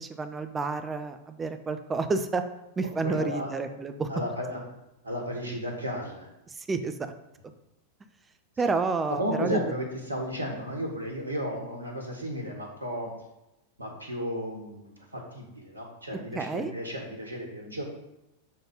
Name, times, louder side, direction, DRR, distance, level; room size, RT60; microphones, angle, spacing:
voice 1, 0.0-2.4 2.8-4.1 6.5-6.9 8.6-9.6 16.3-16.7, right 4 dB, 15° right, 8 dB, 0.6 m, -29 dB
voice 2, 3.0-3.5 4.1-4.6 5.0-6.3 9.1-13.1 13.8-17.8, equal, 80° right, 1 dB, 1.5 m, -34 dB
6.8 x 4.0 x 5.2 m, 0.90 s
figure-of-eight pair, 90°, 0 cm